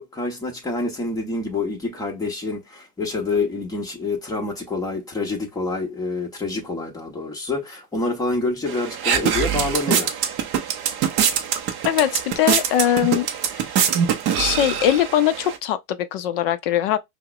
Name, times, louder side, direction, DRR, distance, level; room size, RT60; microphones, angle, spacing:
voice 1, 0.0-10.1, left 3 dB, 10° left, 0.9 m, -27 dB
sound 1, 8.7-15.6, right 8 dB, 25° right, 0.5 m, -23 dB
voice 2, 11.8-13.3 13.6-13.7 14.4-17.0, left 11 dB, 40° left, 0.5 m, -21 dB
5.5 x 2.1 x 2.3 m
hypercardioid pair, 135°, 45 cm